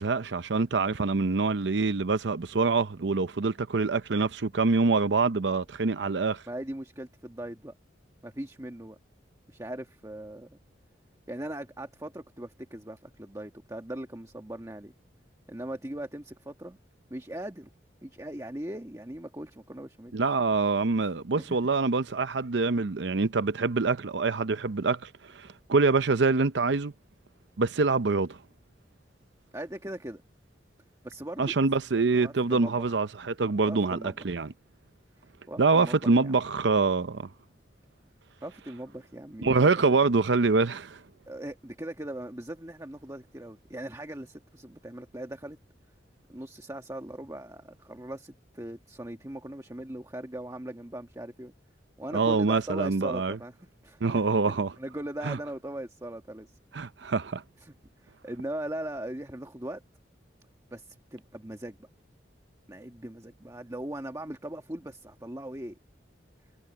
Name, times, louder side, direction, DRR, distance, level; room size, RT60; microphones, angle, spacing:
voice 1, 0.0-6.4 20.1-26.9 27.6-28.4 31.4-34.5 35.6-37.3 39.4-41.0 52.1-53.4 54.0-54.7 55.2-55.4 56.7-57.4, right 4 dB, 75° right, 0.7 m, -25 dB
voice 2, 6.5-7.7 8.2-9.0 9.5-10.6 11.3-14.9 15.5-16.8 17.1-17.7 18.0-20.2 21.0-21.6 29.5-30.2 31.0-31.5 31.9-33.0 33.6-34.2 35.5-36.4 38.4-40.0 41.3-45.6 46.3-51.5 52.0-53.6 53.8-56.5 57.6-57.7 58.0-59.8 60.7-61.9 62.7-65.8, right 1 dB, 15° right, 1.5 m, -39 dB
head